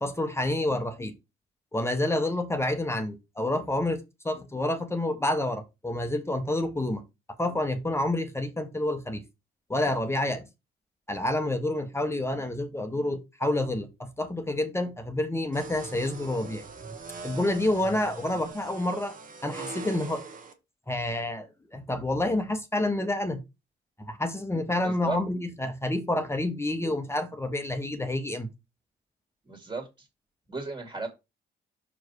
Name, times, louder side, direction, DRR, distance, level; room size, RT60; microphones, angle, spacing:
voice 1, 0.0-1.1 1.7-7.0 7.4-9.2 9.7-10.4 11.1-16.7 17.2-19.1 19.4-20.2 20.9-23.4 24.0-28.5, left 1 dB, 15° left, 1.1 m, -28 dB
sound 1, 15.5-20.5, right 3 dB, 45° right, 1.6 m, -41 dB
voice 2, 24.8-25.2 29.5-30.1 30.5-31.1, right 3 dB, 20° right, 2.2 m, -34 dB
6.0 x 4.7 x 4.7 m
cardioid pair, 90°, 20 cm